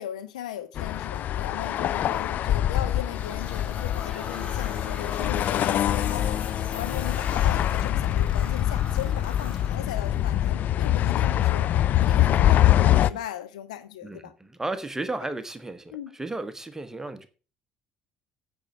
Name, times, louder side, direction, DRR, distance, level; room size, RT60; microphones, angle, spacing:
voice 1, 0.0-11.7 12.0-14.3 15.9-16.1, left 11 dB, 70° left, 0.9 m, -37 dB
sound 1, 0.8-13.1, left 12 dB, 45° left, 0.4 m, -24 dB
sound 2, 2.7-10.2, left 3 dB, 30° left, 3.2 m, -43 dB
voice 2, 14.0-17.3, right 2 dB, 10° right, 1.1 m, -34 dB
9.0 x 5.4 x 6.4 m
figure-of-eight pair, 55°, 4 cm